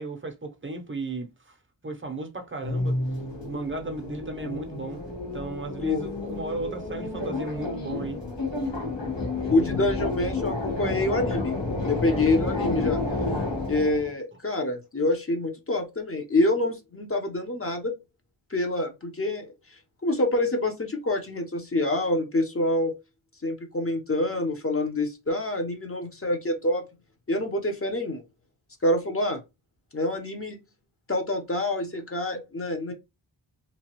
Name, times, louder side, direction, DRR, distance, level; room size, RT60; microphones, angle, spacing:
voice 1, 0.0-1.6 1.8-3.0 3.4-5.0 5.3-8.2, right 2 dB, 25° right, 0.7 m, -35 dB
sound 1, 2.6-14.1, left 2 dB, 60° left, 1.2 m, -30 dB
voice 2, 5.8-6.1 9.5-11.5 11.8-13.0 13.7-17.9 18.5-19.5 20.0-22.9 23.4-26.9 27.3-28.2 28.8-29.4 29.9-30.6 31.1-32.9, left 2 dB, 30° left, 0.8 m, -26 dB
3.0 x 2.3 x 2.9 m
wide cardioid pair, 80°, 48 cm